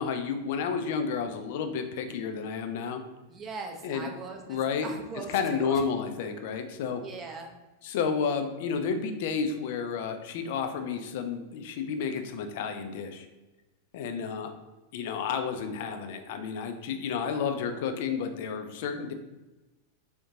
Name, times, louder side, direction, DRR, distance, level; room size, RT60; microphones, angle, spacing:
voice 1, 0.0-3.0 3.8-4.1 4.5-4.9 5.3-7.0 7.8-13.3 13.9-14.5 14.9-19.1, left 6 dB, 50° left, 7 dB, 0.3 m, -31 dB
voice 2, 3.3-5.8 7.0-7.5, right 4 dB, 25° right, 2 dB, 0.5 m, -40 dB
3.7 x 2.1 x 2.7 m, 1.1 s
figure-of-eight pair, 90°, 0 cm